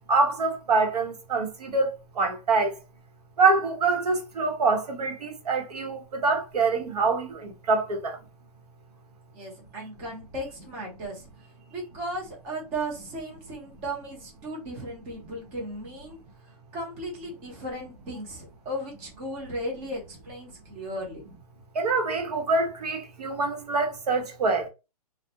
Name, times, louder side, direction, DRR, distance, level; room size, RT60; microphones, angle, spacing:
voice 1, 0.1-2.8 3.4-8.2 21.7-24.7, right 3 dB, 80° right, 0.8 m, -25 dB
voice 2, 9.3-11.3 11.7-16.2 16.7-21.2, right 1 dB, 20° right, 0.7 m, -36 dB
2.2 x 2.0 x 2.8 m
hypercardioid pair, 170°, 20 cm